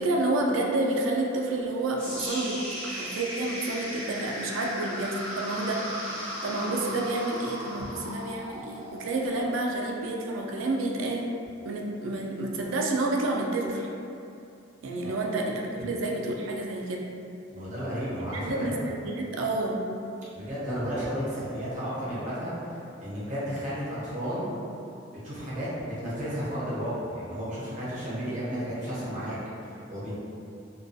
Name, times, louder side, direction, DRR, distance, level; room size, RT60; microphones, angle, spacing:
voice 1, 0.0-11.3 11.6-13.9 14.8-17.1 18.3-19.8, right 2 dB, 75° right, 0 dB, 0.3 m, -29 dB
sound 1, 2.0-10.0, equal, 5° left, 0.9 m, -37 dB
voice 2, 17.5-18.8 20.3-24.5 25.2-25.7 26.0-29.4 29.7-30.1, equal, 40° right, -9 dB, 0.7 m, -33 dB
2.3 x 2.2 x 2.5 m, 2.6 s
head